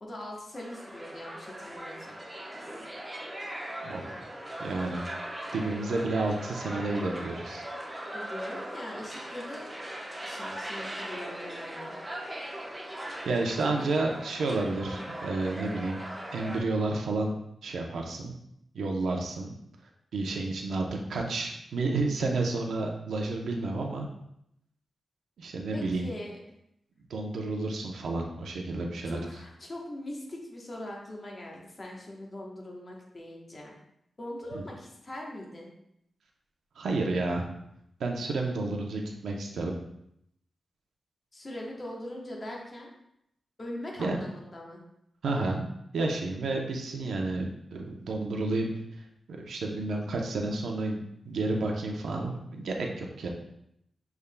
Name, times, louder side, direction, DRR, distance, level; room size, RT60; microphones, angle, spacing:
voice 1, 0.0-2.2 8.1-9.7 10.2-12.0 13.6-13.9 25.7-26.4 29.0-33.8 34.2-35.7 41.3-42.9 43.6-44.8, left 1 dB, 30° left, -2 dB, 1.0 m, -41 dB
sound 1, 0.5-16.6, right 1 dB, 15° right, 0.9 m, -39 dB
voice 2, 3.8-4.3 4.6-5.1 5.5-7.6 13.3-16.0 16.3-17.4 17.6-18.3 18.7-19.5 20.1-24.1 25.4-26.1 27.1-29.2 34.5-34.6 36.8-37.4 38.0-39.7 44.0-44.2 45.2-45.7 45.9-48.7 49.3-53.3, right 2 dB, 90° right, 1 dB, 0.6 m, -31 dB
6.7 x 3.5 x 2.2 m, 0.77 s
wide cardioid pair, 120°, 0 cm